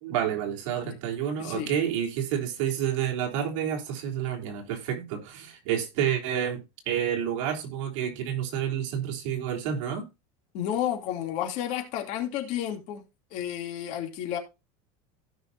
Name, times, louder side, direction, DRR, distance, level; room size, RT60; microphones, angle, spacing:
voice 1, 0.0-10.1, right 9 dB, 75° right, 3.5 m, -29 dB
voice 2, 1.4-1.8 10.5-13.1 13.3-14.4, left 10 dB, 45° left, 2.8 m, -31 dB
16.5 x 5.8 x 2.7 m
cardioid pair, 170°, 16 cm